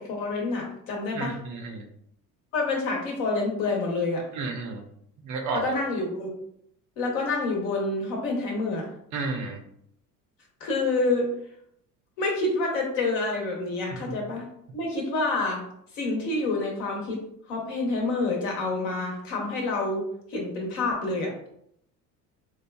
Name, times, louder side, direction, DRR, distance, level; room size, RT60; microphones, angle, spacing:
voice 1, 0.0-1.4 2.5-4.2 5.6-6.3 7.0-8.8 10.6-11.3 12.2-14.4 14.7-15.6 15.9-17.2 17.5-20.0 20.3-21.3, left 3 dB, 60° left, 0 dB, 1.1 m, -27 dB
voice 2, 1.1-1.9 4.3-4.8 5.2-5.7 9.1-9.6 13.9-14.0, right 3 dB, 40° right, 3 dB, 0.6 m, -32 dB
4.4 x 2.3 x 2.2 m, 0.71 s
figure-of-eight pair, 60°, 46 cm